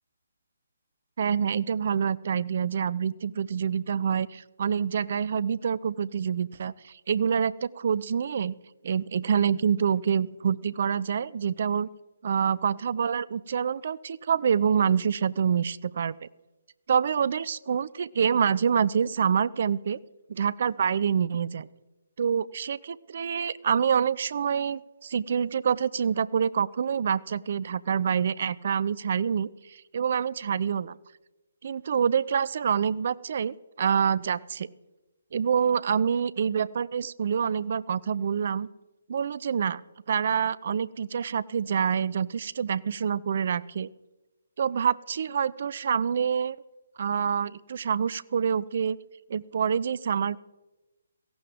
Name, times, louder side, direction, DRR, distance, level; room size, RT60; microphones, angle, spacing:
voice 1, 1.2-8.5 8.8-11.9 12.2-16.2 16.9-20.0 20.3-21.7 22.2-31.0 31.6-34.7 35.3-38.7 39.1-39.8 40.1-43.9 44.6-46.6 47.0-49.0 49.3-50.4, right 7 dB, 50° right, 21 dB, 0.5 m, -26 dB
17.5 x 15.5 x 3.5 m, 1.1 s
figure-of-eight pair, 140°, 0 cm